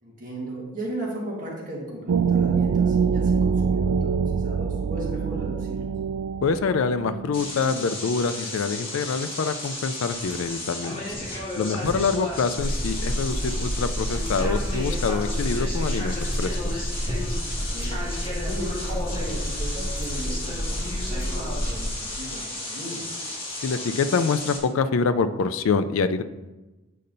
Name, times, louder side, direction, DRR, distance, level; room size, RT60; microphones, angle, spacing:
voice 1, 0.0-5.9 11.7-11.9 17.6-23.0, right 1 dB, 40° right, -4 dB, 1.5 m, -36 dB
sound 1, 2.1-7.5, right 6 dB, 80° right, 0.3 m, -24 dB
voice 2, 6.4-11.1 11.6-16.8 23.6-26.2, left 5 dB, 70° left, 11 dB, 0.4 m, -25 dB
sound 2, 7.3-24.6, left 2 dB, 25° left, 1.5 m, -34 dB
sound 3, 12.6-21.9, equal, ahead, 0.4 m, -29 dB
8.4 x 5.4 x 2.6 m, 1.1 s
head